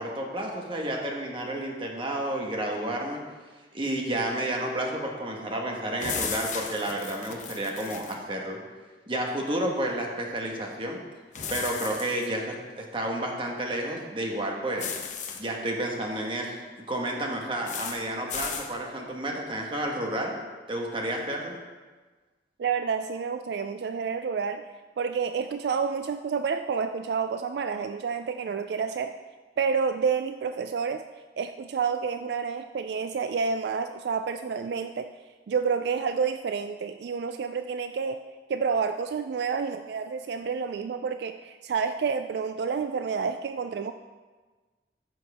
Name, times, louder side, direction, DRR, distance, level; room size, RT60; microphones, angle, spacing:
voice 1, 0.0-3.2 3.7-8.6 9.1-11.0 11.5-14.8 15.4-16.6 16.9-20.3 20.7-21.6, right 1 dB, 30° right, 0 dB, 1.3 m, -31 dB
sound 1, 6.0-8.2 11.3-12.3 14.8-15.4 17.7-18.0 18.3-18.7, left 6 dB, 45° left, 0.9 m, -35 dB
voice 2, 22.6-24.7 25.0-29.2 29.6-31.0 31.4-35.1 35.5-38.2 38.5-43.9, right 5 dB, 70° right, 8 dB, 0.3 m, -29 dB
14.5 x 6.0 x 3.5 m, 1.3 s
head